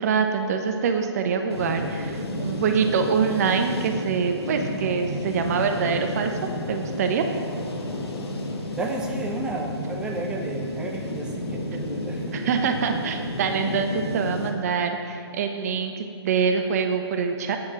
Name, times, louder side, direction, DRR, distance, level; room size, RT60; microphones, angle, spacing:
voice 1, 0.0-6.3 6.7-7.2 12.3-17.6, right 6 dB, 35° right, 5 dB, 0.8 m, -25 dB
sound 1, 1.5-14.5, left 1 dB, 70° left, 1.6 m, -31 dB
voice 2, 8.7-12.4, right 2 dB, 5° right, -1 dB, 0.7 m, -32 dB
8.8 x 7.2 x 6.3 m, 2.5 s
figure-of-eight pair, 140°, 14 cm